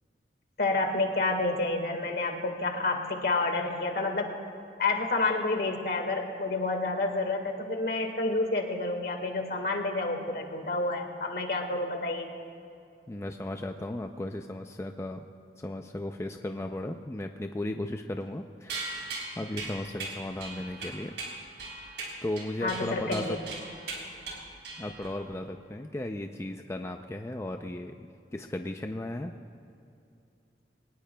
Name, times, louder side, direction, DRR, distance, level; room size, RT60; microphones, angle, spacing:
voice 1, 0.6-4.4 4.8-12.3 22.6-23.4, left 2 dB, 60° left, 4 dB, 1.7 m, -29 dB
voice 2, 13.1-15.2 15.6-18.9 19.4-21.2 21.7-23.4 24.8-29.3, left 1 dB, 15° left, 5 dB, 0.4 m, -36 dB
sound 1, 18.7-25.3, right 3 dB, 85° right, 3.7 m, -39 dB
22.5 x 19.0 x 2.3 m, 2.6 s
head